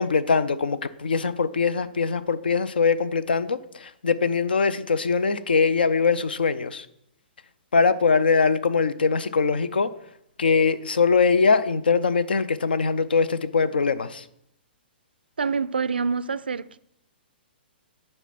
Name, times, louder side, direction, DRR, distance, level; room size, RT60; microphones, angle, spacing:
voice 1, 0.0-6.9 7.7-9.9 10.4-14.2, left 5 dB, 65° left, 0.5 m, -22 dB
voice 2, 15.4-16.8, right 5 dB, 70° right, 0.3 m, -26 dB
8.9 x 4.5 x 5.8 m
figure-of-eight pair, 115°, 6 cm